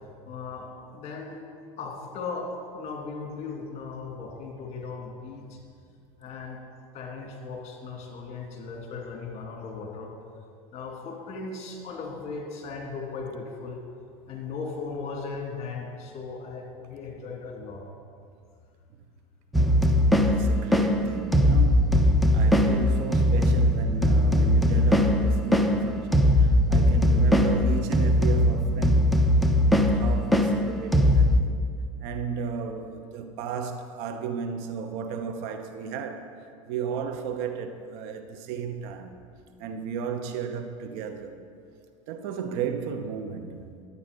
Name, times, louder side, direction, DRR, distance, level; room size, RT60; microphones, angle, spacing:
voice 1, 0.2-0.7 0.9-1.4 1.8-2.5 2.7-5.6 6.2-6.6 6.9-10.1 10.7-13.8 14.3-17.8, left 4 dB, 40° left, 2.7 m, -37 dB
sound 1, 19.5-31.4, left 1 dB, ahead, 0.7 m, -21 dB
voice 2, 20.2-29.1 29.6-31.6 32.0-36.3 36.7-39.2 39.6-41.4 42.1-43.6, right 6 dB, 65° right, 1.0 m, -34 dB
11.5 x 8.7 x 5.3 m
hypercardioid pair, 95°, 17 cm